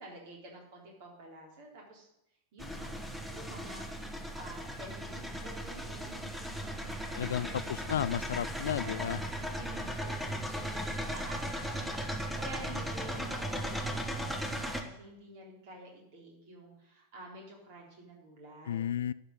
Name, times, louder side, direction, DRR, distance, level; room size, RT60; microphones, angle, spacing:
voice 1, 0.0-2.1 2.5-6.3 6.6-7.7 8.5-9.0 9.4-18.8, right 1 dB, 50° right, -1 dB, 3.9 m, -50 dB
sound 1, 2.6-14.8, equal, ahead, 1.3 m, -37 dB
voice 2, 7.1-9.2 18.7-19.1, left 10 dB, 60° left, 18 dB, 0.3 m, -33 dB
12.0 x 5.1 x 8.2 m, 0.81 s
figure-of-eight pair, 90°, 0 cm